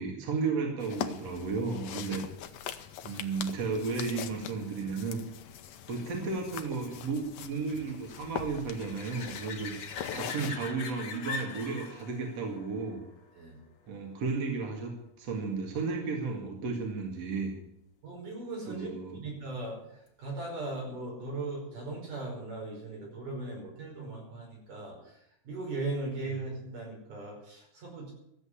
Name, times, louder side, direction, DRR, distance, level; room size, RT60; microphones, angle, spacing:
voice 1, 0.0-2.2 3.0-5.2 5.9-9.7 10.1-13.0 13.9-14.9 15.2-17.5 18.7-19.2, right 4 dB, 55° right, 1 dB, 3.1 m, -33 dB
sound 1, 0.8-10.5, left 10 dB, 70° left, 1.7 m, -42 dB
sound 2, 3.1-14.4 20.1-20.2, left 5 dB, 40° left, 2.0 m, -45 dB
voice 2, 18.0-18.9 19.2-19.8 20.2-25.2 25.5-28.1, right 2 dB, 80° right, -2 dB, 6.9 m, -38 dB
14.0 x 8.1 x 10.0 m, 0.79 s
omnidirectional pair, 3.6 m